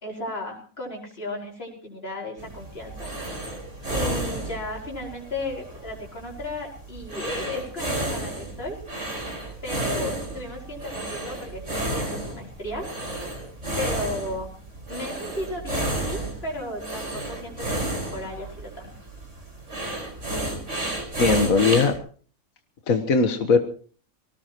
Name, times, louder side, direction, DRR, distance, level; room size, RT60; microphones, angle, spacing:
voice 1, 0.0-3.3 3.9-8.8 9.6-12.8 13.8-14.5 14.9-18.9, left 1 dB, 45° left, -2 dB, 5.5 m, -34 dB
sound 1, 2.4-22.0, right 1 dB, 55° right, 5.4 m, -32 dB
voice 2, 21.2-21.9 22.9-23.6, left 4 dB, 75° left, 6 dB, 1.8 m, -19 dB
24.5 x 18.0 x 3.0 m, 0.43 s
omnidirectional pair, 1.5 m